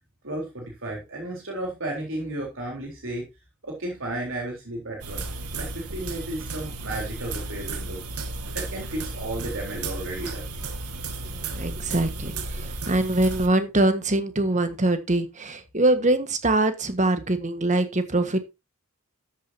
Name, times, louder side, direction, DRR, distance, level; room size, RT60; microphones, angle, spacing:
voice 1, 0.2-3.3 3.6-8.0 8.5-10.4, right 1 dB, 60° right, 3.8 m, -33 dB
sound 1, 5.0-13.5, right 3 dB, 85° right, 1.8 m, -34 dB
voice 2, 11.3-18.4, right 2 dB, 35° right, 1.5 m, -23 dB
13.0 x 8.7 x 2.8 m
head